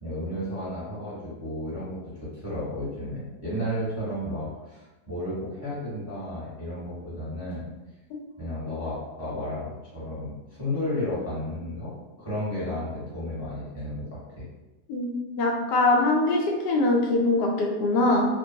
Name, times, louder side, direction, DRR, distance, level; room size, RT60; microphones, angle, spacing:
voice 1, 0.0-2.0 2.4-7.6 8.4-14.4, left 1 dB, 10° right, -11 dB, 1.0 m, -33 dB
voice 2, 14.9-18.3, left 2 dB, 80° left, -1 dB, 1.2 m, -23 dB
2.9 x 2.2 x 2.7 m, 1.1 s
omnidirectional pair, 1.8 m